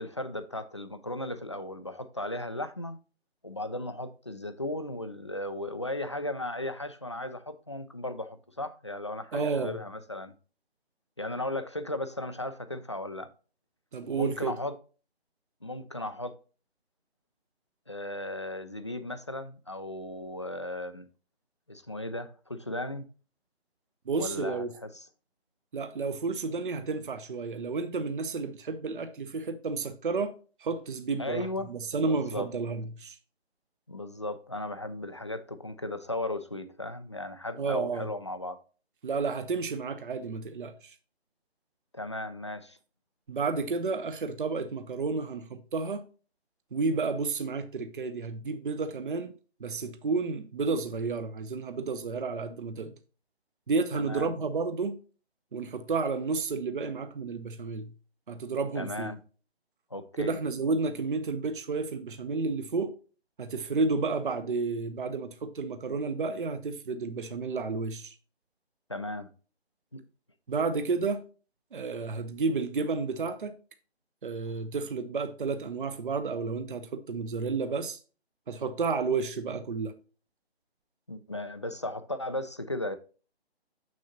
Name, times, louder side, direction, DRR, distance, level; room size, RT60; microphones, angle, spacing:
voice 1, 0.0-3.0 3.4-10.3 11.2-13.3 14.1-14.7 15.6-16.4 17.9-21.1 21.7-23.1 24.2-25.1 31.2-31.7 32.0-32.5 33.9-38.6 41.9-42.8 53.9-54.3 58.8-59.2 59.9-60.4 68.9-69.3 69.9-70.0 81.1-83.0, left 1 dB, 30° left, 0.4 m, -36 dB
voice 2, 9.3-9.8 13.9-14.6 24.1-24.7 25.7-33.2 37.6-38.1 39.0-40.9 43.3-46.1 46.7-49.3 49.6-53.0 53.7-55.0 55.5-57.9 58.3-59.1 60.2-62.9 63.4-68.1 70.5-71.2 71.7-73.6 74.2-78.0 78.5-80.0, right 4 dB, 50° right, 0.8 m, -31 dB
7.0 x 6.4 x 2.8 m
figure-of-eight pair, 145°, 32 cm